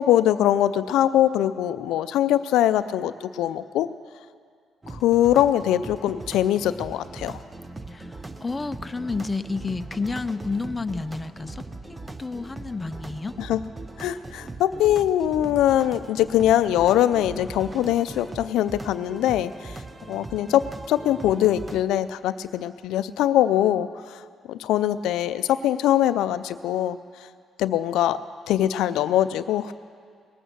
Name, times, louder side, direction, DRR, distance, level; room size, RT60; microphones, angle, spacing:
voice 1, 0.0-3.9 4.9-7.4 13.4-13.6 14.0-19.8 20.1-24.2 24.5-27.0 27.6-28.2 28.5-29.7, left 12 dB, 90° left, 13 dB, 0.4 m, -22 dB
sound 1, 4.8-21.8, right 2 dB, 20° right, 0.7 m, -40 dB
voice 2, 7.9-13.4 24.6-24.7, left 3 dB, 20° left, 10 dB, 0.5 m, -31 dB
19.5 x 8.7 x 6.7 m, 2.1 s
cardioid pair, 90°, 0 cm